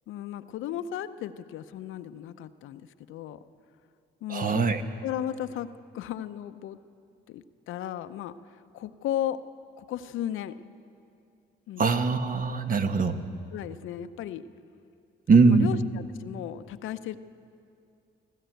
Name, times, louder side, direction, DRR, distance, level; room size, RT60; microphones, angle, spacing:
voice 1, 0.1-2.8 3.1-3.4 4.2-4.6 5.0-6.8 7.3-9.4 9.8-10.6 11.7-11.9 13.5-14.5 15.3-17.2, left 11 dB, 85° left, 11 dB, 0.7 m, -35 dB
voice 2, 4.3-4.8 11.8-13.2 15.3-15.7, right 4 dB, 45° right, 8 dB, 1.2 m, -21 dB
20.5 x 14.0 x 9.2 m, 2.5 s
cardioid pair, 90°, 20 cm